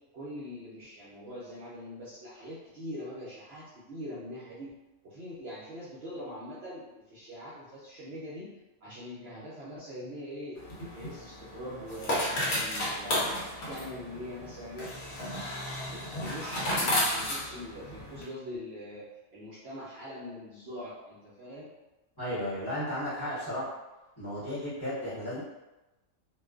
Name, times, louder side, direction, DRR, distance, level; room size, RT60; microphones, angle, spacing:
voice 1, 0.1-4.7 5.0-8.5 8.8-14.9 15.9-21.7, left 1 dB, 60° right, -8 dB, 0.7 m, -43 dB
sound 1, 10.6-18.2, left 1 dB, 60° left, 0.9 m, -33 dB
voice 2, 22.2-23.6 24.2-25.4, equal, 20° left, -12 dB, 1.1 m, -34 dB
2.4 x 2.2 x 2.3 m, 1.0 s
omnidirectional pair, 1.4 m